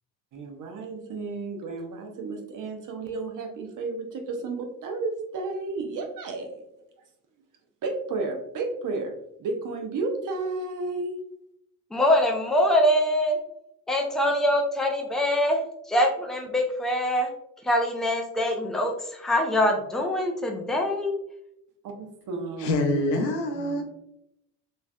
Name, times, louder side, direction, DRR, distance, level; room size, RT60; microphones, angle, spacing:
voice 1, 0.3-6.6 7.8-9.1 9.4-11.1 21.8-23.1, right 3 dB, 40° right, 4 dB, 0.7 m, -32 dB
voice 2, 11.9-13.4 13.9-15.6 15.9-17.3 17.6-21.1, left 1 dB, ahead, 2 dB, 0.4 m, -24 dB
voice 3, 22.6-23.8, left 1 dB, 85° left, 2 dB, 0.7 m, -25 dB
3.2 x 2.6 x 2.2 m, 0.78 s
hypercardioid pair, 55°, 48 cm